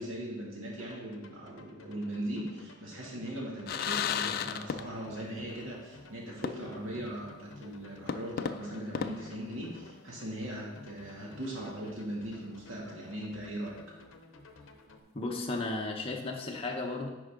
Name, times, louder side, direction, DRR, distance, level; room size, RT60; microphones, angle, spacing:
voice 1, 0.0-13.8, right 1 dB, 75° right, -4 dB, 2.2 m, -39 dB
sound 1, 0.8-15.0, left 2 dB, 70° left, 0.7 m, -54 dB
sound 2, 3.7-5.3 5.5-5.6 6.4-7.0 7.3-7.4 8.1-10.1, left 7 dB, 50° left, 0.3 m, -35 dB
voice 2, 15.1-17.1, left 2 dB, 30° left, 0 dB, 0.7 m, -34 dB
10.0 x 4.6 x 3.7 m, 1.1 s
head